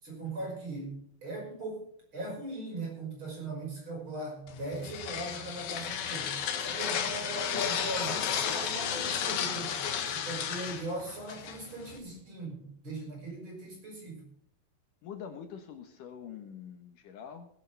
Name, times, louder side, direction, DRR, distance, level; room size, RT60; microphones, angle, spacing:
voice 1, 0.0-1.9 2.1-9.8 10.1-14.2, right 2 dB, 35° right, 0 dB, 6.2 m, -39 dB
sound 1, 4.5-12.0, left 8 dB, 90° left, 3.3 m, -33 dB
voice 2, 15.0-17.5, left 8 dB, 70° left, 6 dB, 2.8 m, -45 dB
20.0 x 11.5 x 3.4 m, 0.64 s
omnidirectional pair, 4.1 m